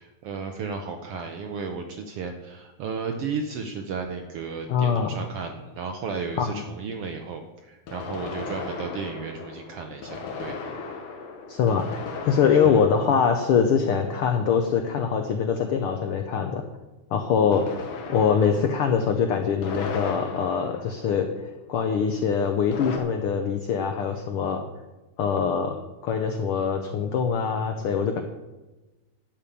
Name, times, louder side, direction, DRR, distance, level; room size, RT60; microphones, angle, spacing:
voice 1, 0.0-10.6 12.6-12.8, right 5 dB, 75° right, 5 dB, 1.4 m, -34 dB
sound 1, 3.9-4.0 7.9-14.4 17.5-21.7 22.7-23.0, left 4 dB, 60° left, 1.8 m, -37 dB
voice 2, 4.7-5.1 6.4-6.6 11.5-12.0 12.2-16.6 17.1-17.8 18.1-21.3 21.7-24.6 25.2-25.8 26.0-28.2, left 6 dB, 85° left, 6 dB, 1.2 m, -23 dB
11.5 x 5.2 x 8.4 m, 1.1 s
omnidirectional pair, 3.5 m